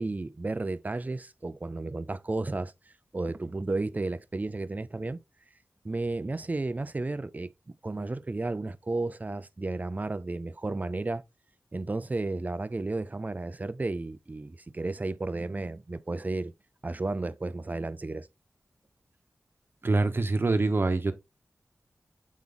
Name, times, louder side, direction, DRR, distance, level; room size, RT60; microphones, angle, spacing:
voice 1, 0.0-2.7 3.1-5.2 5.8-11.2 11.7-16.5 16.8-18.3, right 2 dB, 35° right, 0.5 m, -33 dB
voice 2, 19.8-21.1, right 3 dB, 50° right, 1.1 m, -25 dB
7.3 x 3.8 x 3.5 m
wide cardioid pair, 55°, 5 cm